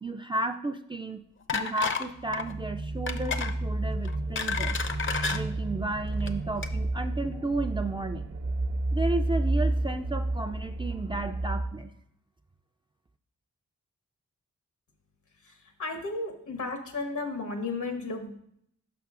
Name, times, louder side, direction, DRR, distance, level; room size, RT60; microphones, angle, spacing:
voice 1, 0.0-1.2 1.5-4.8 5.3-8.3 8.9-11.9, right 2 dB, 15° right, 5 dB, 0.3 m, -33 dB
sound 1, 1.5-2.1 2.3-2.5 3.1-3.5 4.0-5.4 6.1-6.3 6.6-6.7, left 5 dB, 40° left, 0.5 m, -30 dB
sound 2, 2.2-11.7, right 2 dB, 65° right, 0.8 m, -31 dB
voice 2, 15.4-18.3, left 3 dB, 80° left, 5 dB, 1.0 m, -34 dB
6.0 x 5.7 x 3.6 m, 0.70 s
cardioid pair, 70°, 30 cm